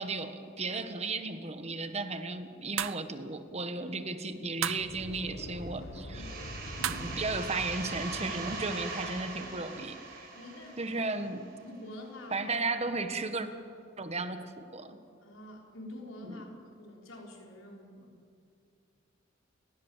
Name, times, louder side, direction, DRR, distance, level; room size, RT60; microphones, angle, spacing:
voice 1, 0.0-6.3 6.8-10.3 10.8-11.5 12.3-13.5 14.0-15.0 16.2-16.4, right 3 dB, 35° right, 9 dB, 1.5 m, -35 dB
sound 1, 2.8-3.1 4.6-4.9 6.8-7.2, right 10 dB, 85° right, 0.7 m, -33 dB
sound 2, 4.6-9.8, left 1 dB, 55° left, 1.8 m, -44 dB
voice 2, 6.1-6.6 10.3-10.8 11.6-12.5 13.3-13.4 15.2-18.1, left 1 dB, 90° left, 0 dB, 5.1 m, -47 dB
sound 3, 6.1-11.6, right 3 dB, 50° right, 6.2 m, -41 dB
29.5 x 19.5 x 7.4 m, 2.4 s
head